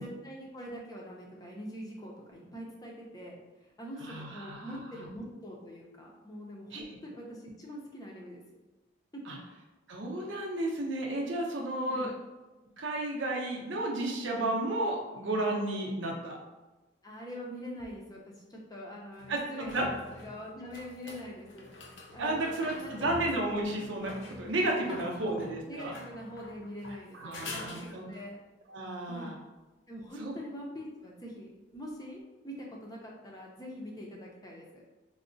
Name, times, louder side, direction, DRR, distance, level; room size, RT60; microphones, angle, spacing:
voice 1, 0.0-8.4 9.1-9.4 11.9-12.1 17.0-21.7 22.1-23.2 24.9-25.3 25.7-28.4 29.1-29.3 29.9-34.8, equal, 20° left, -2 dB, 0.5 m, -44 dB
voice 2, 4.0-4.8 6.7-6.8 9.3-9.4 9.9-12.1 12.8-16.4 19.3-19.9 22.2-25.9 27.1-28.1 28.7-29.4 30.2-30.3, right 1 dB, 85° right, -1 dB, 0.7 m, -32 dB
sound 1, 17.8-17.9 19.2-28.3 31.7-31.8, left 2 dB, 80° left, 0.5 m, -46 dB
4.5 x 2.1 x 2.6 m, 1.1 s
head